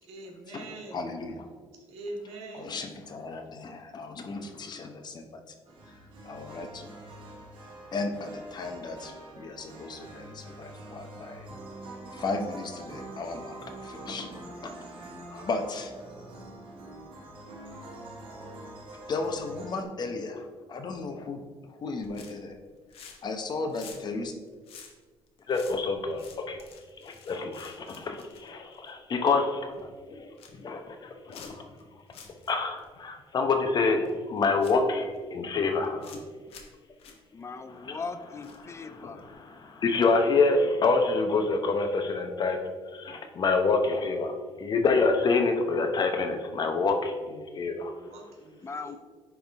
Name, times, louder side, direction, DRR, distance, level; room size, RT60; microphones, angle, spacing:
voice 1, 0.0-1.2 1.7-2.8 47.9-49.0, right 1 dB, 85° right, 1 dB, 1.3 m, -43 dB
voice 2, 0.9-1.5 2.6-5.3 6.3-6.9 7.9-11.5 12.1-14.3 14.6-14.7 15.3-15.9 19.1-21.4 21.7-22.6 23.2-24.3 25.5-26.6 27.0-31.7 32.5-36.5 37.7-38.0 38.6-47.9, left 3 dB, 45° left, 5 dB, 0.9 m, -29 dB
sound 1, 5.7-19.8, right 2 dB, 55° right, 1.5 m, -45 dB
sound 2, 22.0-22.5 22.8-23.4 23.6-29.2 29.6-29.8 30.1-30.6 31.3-31.8 32.1-32.5 32.8-32.9 34.0-34.1 34.6-35.2 35.7-36.2 36.5-36.7 37.0-37.2 38.4-38.8 39.2-39.3, left 6 dB, 70° left, 1.1 m, -50 dB
voice 3, 37.3-39.2 48.6-49.0, left 4 dB, 25° left, 10 dB, 0.4 m, -39 dB
10.5 x 3.6 x 3.6 m, 1.5 s
cardioid pair, 105°, 10 cm